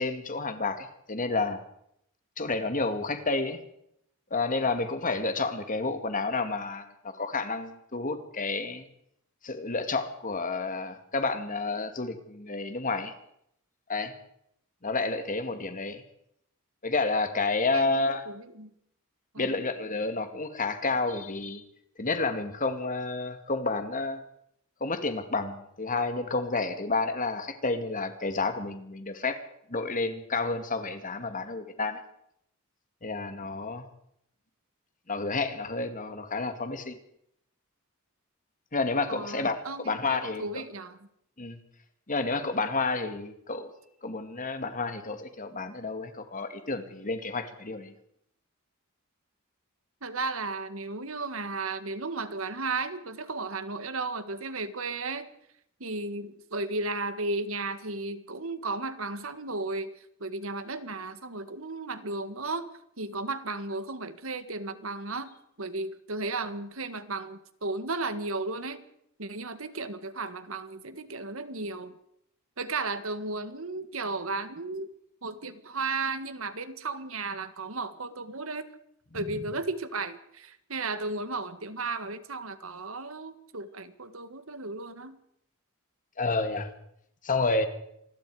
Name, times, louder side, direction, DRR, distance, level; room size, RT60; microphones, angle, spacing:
voice 1, 0.0-1.6 2.4-3.6 4.3-8.9 9.4-13.1 13.9-14.1 14.8-16.0 16.8-18.2 19.4-21.6 22.0-24.2 24.8-29.4 29.7-32.0 33.0-33.9 35.1-37.0 38.7-40.6 41.4-41.6 42.1-43.7 44.0-47.9 79.3-79.5 86.2-86.7 87.2-87.7, left 3 dB, 40° left, 8 dB, 2.2 m, -30 dB
voice 2, 17.7-18.7 19.3-19.6 39.1-41.0 50.0-55.3 55.8-62.7 63.0-68.8 69.2-72.0 72.6-74.9 75.2-78.7 79.1-85.2, right 3 dB, 70° right, 11 dB, 1.7 m, -34 dB
27.5 x 20.5 x 5.0 m, 0.75 s
head